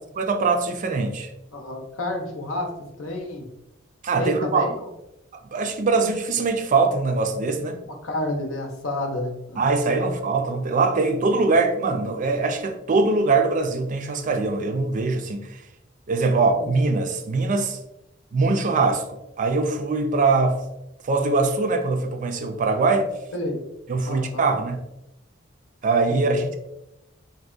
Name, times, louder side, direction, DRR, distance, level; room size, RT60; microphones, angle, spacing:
voice 1, 0.2-1.3 4.0-4.7 5.4-7.8 9.6-15.6 16.1-17.8 18.3-20.6 21.0-23.1 23.9-24.8 25.8-26.5, right 3 dB, 40° right, 5 dB, 0.4 m, -22 dB
voice 2, 1.5-3.5 4.2-4.8 8.0-9.6 10.0-10.1 16.6-16.7 23.3-23.6 24.0-24.5 26.1-26.5, left 1 dB, 85° left, 2 dB, 0.7 m, -30 dB
4.0 x 2.7 x 2.4 m, 0.89 s
head